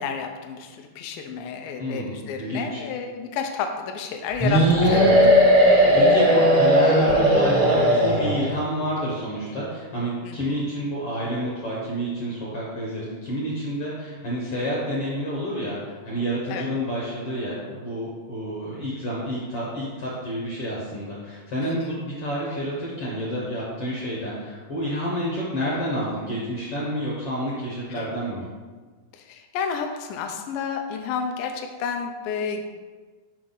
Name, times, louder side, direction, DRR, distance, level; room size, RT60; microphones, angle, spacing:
voice 1, 0.0-5.2 10.2-10.7 16.5-16.7 21.6-21.9 27.9-28.1 29.1-32.6, left 6 dB, 80° left, 4 dB, 2.1 m, -31 dB
voice 2, 1.8-2.8 4.8-28.5, equal, 60° left, -5 dB, 1.5 m, -29 dB
sound 1, 4.4-8.6, equal, 25° right, 0.5 m, -17 dB
6.2 x 5.6 x 3.9 m, 1.4 s
omnidirectional pair, 4.2 m